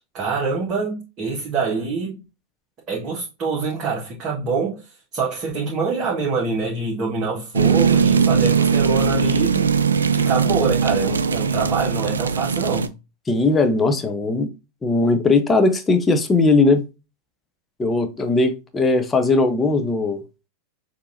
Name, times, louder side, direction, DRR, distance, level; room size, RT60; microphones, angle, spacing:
voice 1, 0.1-2.1 2.9-4.8 5.1-9.7 10.1-12.9, right 4 dB, 30° right, 1.6 m, -25 dB
sound 1, 7.5-12.9, right 6 dB, 70° right, 0.4 m, -19 dB
voice 2, 13.3-14.5 14.8-16.8 17.8-20.2, left 3 dB, 15° left, 0.7 m, -18 dB
6.7 x 2.8 x 2.7 m
figure-of-eight pair, 90°, 0 cm